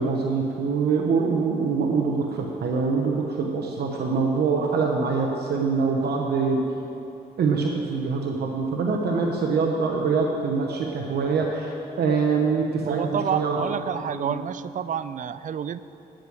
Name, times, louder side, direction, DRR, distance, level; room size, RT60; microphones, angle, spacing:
voice 1, 0.0-6.6 7.4-13.6 14.1-14.4, right 4 dB, 80° right, 1 dB, 1.0 m, -24 dB
voice 2, 12.9-15.8, right 8 dB, 50° right, 15 dB, 0.4 m, -29 dB
9.2 x 8.9 x 6.2 m, 2.8 s
cardioid pair, 70°, 17 cm